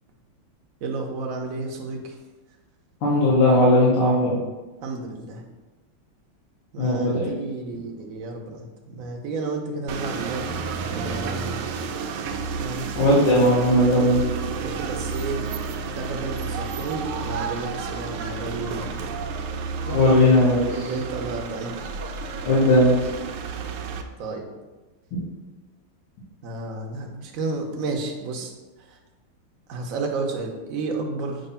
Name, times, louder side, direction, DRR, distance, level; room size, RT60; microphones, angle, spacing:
voice 1, 0.8-2.1 4.8-5.4 6.7-11.6 12.6-12.9 14.6-15.4 15.9-18.8 20.7-21.7 24.2-24.5 26.4-28.5 29.7-31.4, right 3 dB, 50° right, 1 dB, 1.0 m, -31 dB
voice 2, 3.0-4.4 6.8-7.3 12.9-14.2 19.8-20.9 22.5-22.9, left 1 dB, 85° left, -7 dB, 2.4 m, -18 dB
sound 1, 9.9-24.0, right 5 dB, 85° right, 1.5 m, -31 dB
7.9 x 2.9 x 5.6 m, 1.2 s
omnidirectional pair, 2.3 m